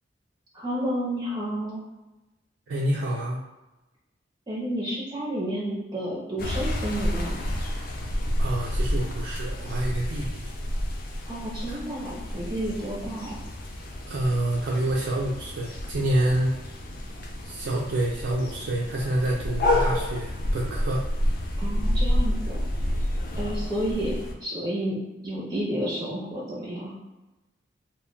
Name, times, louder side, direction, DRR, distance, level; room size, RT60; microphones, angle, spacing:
voice 1, 0.5-1.8 4.5-7.4 11.3-13.4 21.6-22.6 23.4-24.1 24.4-25.0 25.2-27.0, equal, 20° right, -5 dB, 0.5 m, -31 dB
voice 2, 2.7-3.4 8.4-10.4 11.7-11.8 14.1-16.6 17.4-21.0, right 1 dB, 75° right, -3 dB, 0.4 m, -27 dB
sound 1, 6.4-24.3, left 1 dB, 50° left, 0.4 m, -29 dB
2.2 x 2.1 x 3.7 m, 1.0 s
head